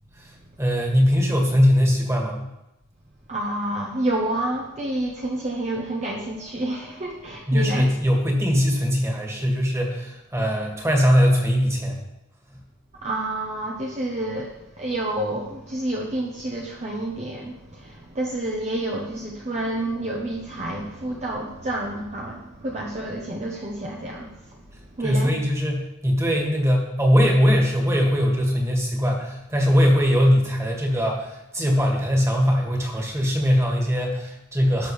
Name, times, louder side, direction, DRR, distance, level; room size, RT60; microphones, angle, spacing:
voice 1, 0.6-2.4 7.5-11.9 25.0-34.9, equal, 15° right, -1 dB, 2.1 m, -21 dB
voice 2, 3.3-7.9 13.0-14.5 14.8-24.3 25.0-25.3, right 1 dB, 35° right, -1 dB, 1.0 m, -29 dB
18.0 x 6.7 x 3.3 m, 0.91 s
head